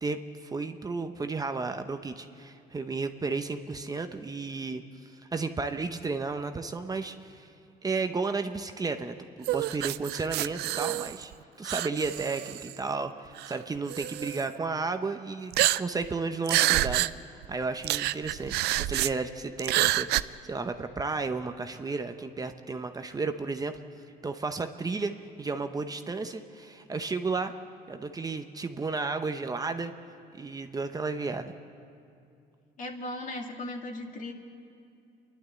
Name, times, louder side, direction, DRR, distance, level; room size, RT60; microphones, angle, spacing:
voice 1, 0.0-7.5 7.8-11.3 11.6-17.1 17.5-23.7 24.2-25.1 25.4-27.5 27.9-29.9 30.3-31.5, right 4 dB, 20° right, 7 dB, 0.8 m, -33 dB
sound 1, 9.4-11.3 11.7-12.8 13.4-13.5 13.9-14.4 15.5-16.1 16.5-17.1 17.4-17.5 17.8-19.1 19.6-20.2, right 16 dB, 80° right, 0.5 m, -27 dB
voice 2, 32.8-34.3, left 1 dB, 50° left, 2 dB, 2.4 m, -37 dB
28.0 x 11.5 x 8.3 m, 2.6 s
cardioid pair, 110°, 17 cm